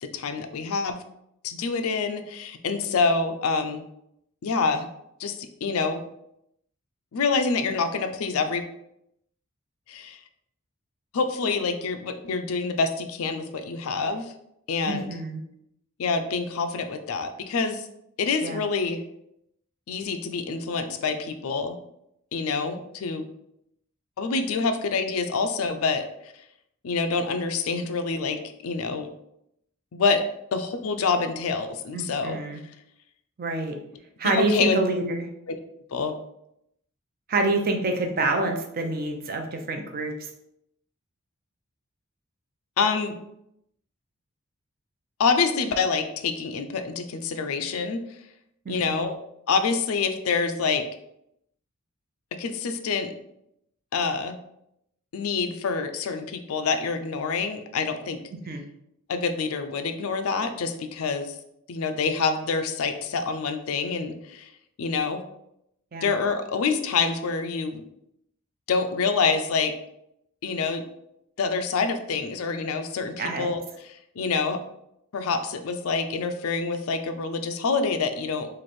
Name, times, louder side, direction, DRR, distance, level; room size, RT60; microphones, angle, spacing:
voice 1, 0.0-1.0 1.4-3.8 4.4-4.9 5.2-6.0 7.1-8.6 9.9-10.2 11.1-14.3 14.7-15.1 16.0-17.9 18.2-19.0 19.9-21.8 22.3-23.3 24.2-26.3 26.8-29.1 29.9-30.2 30.5-32.4 34.3-34.8 35.9-36.2 42.8-43.1 45.2-48.0 48.7-49.2 49.5-50.8 52.4-53.1 53.9-54.4 55.1-58.2 59.1-61.4 61.7-64.5 64.8-65.2 66.0-67.8 68.7-69.7 70.4-70.8 71.4-74.6 75.1-78.5, left 4 dB, 75° left, 8 dB, 0.4 m, -26 dB
voice 2, 14.9-15.4 18.4-18.6 31.9-32.6 33.4-33.8 34.2-35.3 37.3-40.3 48.7-49.1 58.5-58.6 65.9-66.1 73.2-73.5, right 2 dB, 45° right, 4 dB, 0.5 m, -27 dB
3.1 x 2.5 x 4.2 m, 0.78 s
head